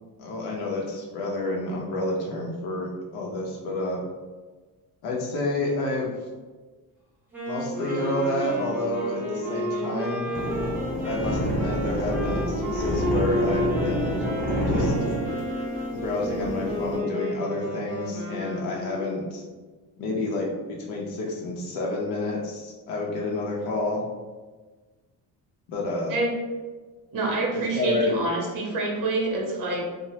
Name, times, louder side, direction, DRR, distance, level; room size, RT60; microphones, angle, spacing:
voice 1, 0.2-4.0 5.0-6.1 7.4-10.3 11.0-14.2 14.6-14.9 15.9-19.4 20.0-24.1 25.7-26.1 27.5-28.2, left 2 dB, 75° left, -3 dB, 0.6 m, -29 dB
Wind instrument woodwind instrument, 7.3-16.0, right 1 dB, 5° right, 0.4 m, -35 dB
Wind instrument woodwind instrument 2, 7.7-19.4, equal, 10° left, 1.4 m, -33 dB
sound 1, 10.3-17.0, equal, 25° right, 1.1 m, -28 dB
voice 2, 27.1-29.8, right 2 dB, 55° right, -2 dB, 0.7 m, -26 dB
3.0 x 2.0 x 2.7 m, 1.3 s
cardioid pair, 155°, 38 cm